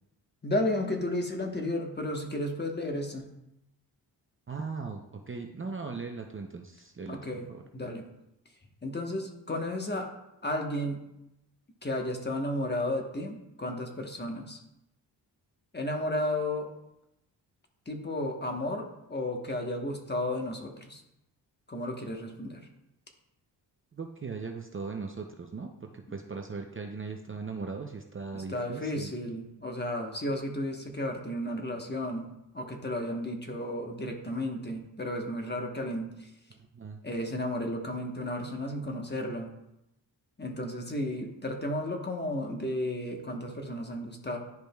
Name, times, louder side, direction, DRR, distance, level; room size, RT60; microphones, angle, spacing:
voice 1, 0.4-3.3 7.1-7.5 7.7-8.1 8.8-10.1 10.4-11.0 11.8-14.6 15.7-16.7 17.9-21.0 21.7-22.7 28.3-36.3 37.0-39.5 40.4-44.4, left 1 dB, 25° left, 3 dB, 1.2 m, -33 dB
voice 2, 4.5-7.2 7.5-7.6 23.9-29.1 36.7-37.0, right 4 dB, 30° right, 3 dB, 0.6 m, -38 dB
10.5 x 5.0 x 2.3 m, 0.86 s
cardioid pair, 65°, 44 cm